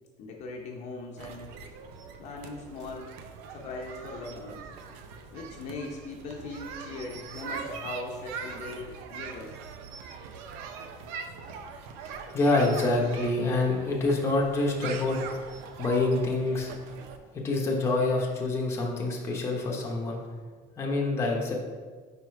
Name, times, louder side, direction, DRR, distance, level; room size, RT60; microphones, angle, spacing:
voice 1, 0.2-1.5 2.2-3.1 3.5-4.7 5.3-9.5, left 3 dB, 45° left, 0 dB, 0.7 m, -39 dB
sound 1, 1.2-17.2, right 6 dB, 75° right, 0.6 m, -42 dB
voice 2, 12.3-15.5 15.8-16.7 17.3-20.2 20.8-21.5, left 2 dB, 15° left, -2 dB, 0.9 m, -26 dB
4.8 x 4.8 x 4.6 m, 1.5 s
cardioid pair, 165°, 16 cm